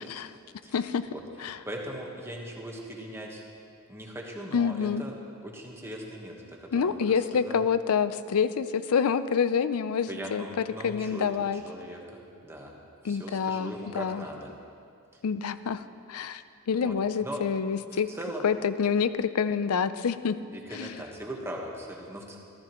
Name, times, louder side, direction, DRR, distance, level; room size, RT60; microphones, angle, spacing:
voice 1, 0.7-1.1 1.4-1.6 4.5-5.0 6.7-11.6 13.0-14.2 15.2-16.4 16.7-18.1 18.4-20.4 20.7-21.0, left 6 dB, 70° left, 13 dB, 0.4 m, -27 dB
voice 2, 1.7-3.4 3.9-5.2 5.4-7.6 10.1-12.7 13.0-14.5 16.7-16.9 17.2-17.4 17.9-18.5 20.5-22.4, right 1 dB, 10° right, -1 dB, 1.3 m, -39 dB
14.0 x 13.5 x 3.0 m, 2.4 s
head